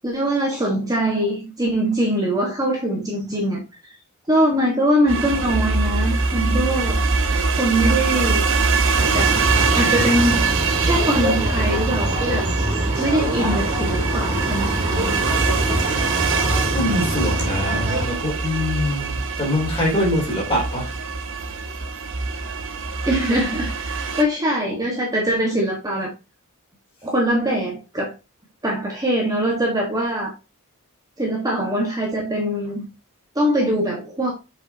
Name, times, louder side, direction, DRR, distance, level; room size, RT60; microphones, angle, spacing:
voice 1, 0.0-3.6 4.3-7.0 7.6-8.4 9.1-9.4 9.7-10.5 10.8-12.5 13.0-15.2 23.0-26.1 27.0-28.1 28.6-30.3 31.2-32.8 33.3-34.3, right 1 dB, 15° right, 1.3 m, -22 dB
sound 1, 5.1-24.2, right 4 dB, 60° right, 0.9 m, -23 dB
sound 2, 8.9-18.0, equal, 35° right, 3.2 m, -25 dB
voice 2, 16.7-20.9, left 1 dB, 25° left, 3.0 m, -24 dB
7.1 x 5.2 x 2.7 m
head